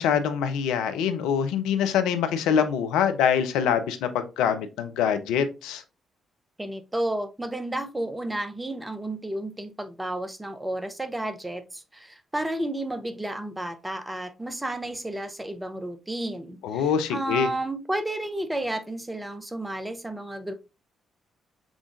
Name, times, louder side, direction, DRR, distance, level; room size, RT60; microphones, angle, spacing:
voice 1, 0.0-5.8 16.6-17.5, left 8 dB, 65° left, 0.4 m, -24 dB
voice 2, 6.6-20.5, right 1 dB, 15° right, 0.7 m, -32 dB
5.0 x 3.5 x 2.4 m
figure-of-eight pair, 40°, 0 cm